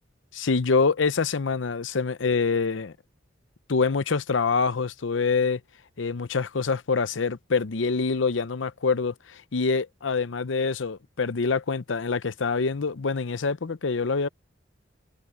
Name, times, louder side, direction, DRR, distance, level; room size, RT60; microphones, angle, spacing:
voice 1, 0.3-2.9 3.7-5.6 6.0-14.3, left 4 dB, 75° left, 0.7 m, -25 dB
head